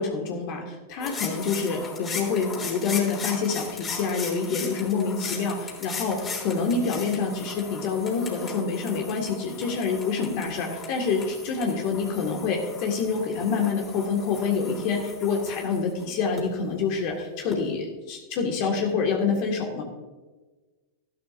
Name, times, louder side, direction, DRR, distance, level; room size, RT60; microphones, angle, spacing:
voice 1, 0.0-19.8, left 5 dB, 50° left, 1 dB, 2.0 m, -27 dB
sound 1, 1.0-16.4 17.5-17.6, left 4 dB, 25° left, 3.6 m, -37 dB
13.5 x 12.0 x 2.7 m, 1.3 s
hypercardioid pair, 100°, 0 cm